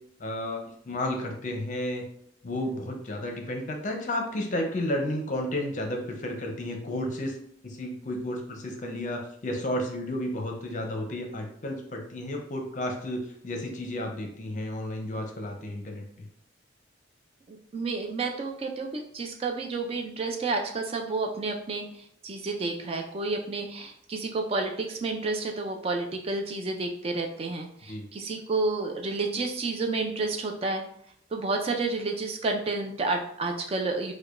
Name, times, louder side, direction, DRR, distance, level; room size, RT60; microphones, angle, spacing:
voice 1, 0.2-0.6 0.9-2.0 2.4-7.4 7.6-16.3 27.9-28.0, left 1 dB, 45° left, 3 dB, 0.6 m, -32 dB
voice 2, 17.5-30.8 31.3-34.1, right 3 dB, 30° right, 4 dB, 0.3 m, -30 dB
4.6 x 2.2 x 2.4 m, 0.67 s
head